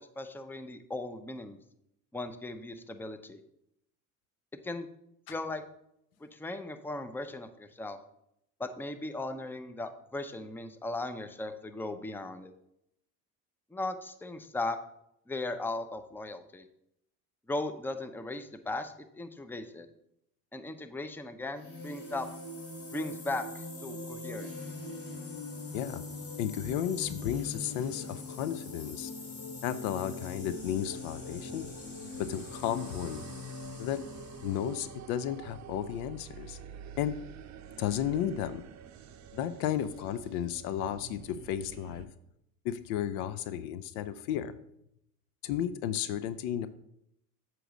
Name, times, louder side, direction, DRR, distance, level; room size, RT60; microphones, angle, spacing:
voice 1, 0.0-1.6 2.1-3.4 4.6-4.9 5.3-5.6 6.2-8.0 8.6-12.5 13.7-14.8 15.3-16.6 17.5-19.9 20.5-22.3 22.9-24.5, left 2 dB, 5° left, 8 dB, 0.6 m, -37 dB
sound 1, 21.5-35.0, left 3 dB, 30° left, 1.7 m, -42 dB
voice 2, 26.4-29.1 29.6-31.7 32.1-33.2 33.8-34.0 34.4-36.6 37.0-37.1 37.8-38.6 39.3-42.1 42.6-44.5 45.4-46.7, left 10 dB, 70° left, 14 dB, 0.6 m, -33 dB
sound 2, 30.5-42.1, right 8 dB, 40° right, 0.7 m, -49 dB
7.9 x 3.1 x 6.2 m, 0.77 s
hypercardioid pair, 70°, 44 cm